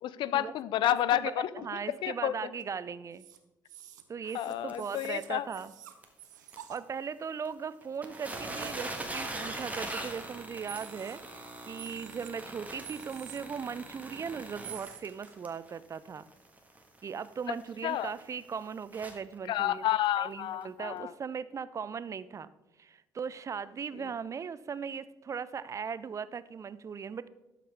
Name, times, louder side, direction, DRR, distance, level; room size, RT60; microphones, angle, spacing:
voice 1, 0.0-1.6 2.0-2.3 4.3-5.5 17.8-18.1 19.5-21.1, left 12 dB, 55° left, 18 dB, 0.4 m, -30 dB
voice 2, 1.6-3.3 4.1-5.7 6.7-16.3 17.0-19.9 20.1-22.5 22.8-27.3, right 6 dB, 35° right, 16 dB, 0.4 m, -38 dB
sound 1, 2.6-2.7 3.1-3.4 3.6-6.8 7.5-7.6 7.9-8.0 8.3-9.2 9.5-9.6 10.0-10.4 10.7-11.4 11.8-12.3 12.8-13.4 14.6-15.0, right 10 dB, 80° right, 0.6 m, -48 dB
sound 2, 4.7-4.8 5.3-5.4 5.6-5.7 6.0-6.1 6.5-6.6 7.5-7.6 7.8-19.4 20.0-20.1 20.6-20.7, right 2 dB, 15° right, 1.6 m, -42 dB
12.0 x 5.8 x 3.5 m, 1.0 s
figure-of-eight pair, 50°, 10 cm